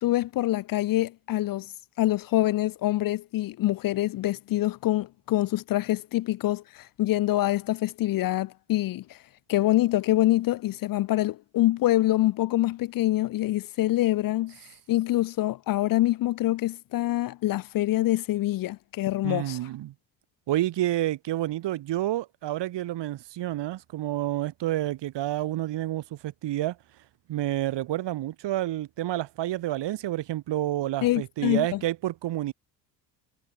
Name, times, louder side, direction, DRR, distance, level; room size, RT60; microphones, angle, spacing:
voice 1, 0.0-1.7 2.0-9.2 9.5-14.6 14.9-19.6 31.0-31.8, left 16 dB, 45° left, 0.6 m, -25 dB
voice 2, 19.2-19.9 20.5-26.8 27.3-32.5, right 14 dB, 60° right, 2.9 m, -29 dB
hypercardioid pair, 60°, 47 cm